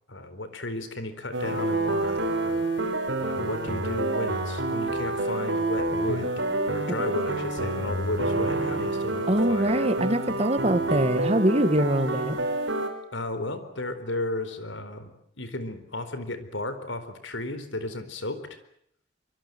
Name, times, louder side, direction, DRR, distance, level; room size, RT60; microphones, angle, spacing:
voice 1, 0.1-2.6 3.2-9.9 10.8-11.0 13.1-18.6, left 2 dB, 70° left, 11 dB, 4.2 m, -34 dB
sound 1, 1.3-12.9, right 2 dB, 65° right, 6.3 m, -28 dB
voice 2, 9.3-12.4, right 1 dB, 30° right, 11 dB, 1.8 m, -23 dB
25.5 x 24.5 x 7.8 m, 0.69 s
head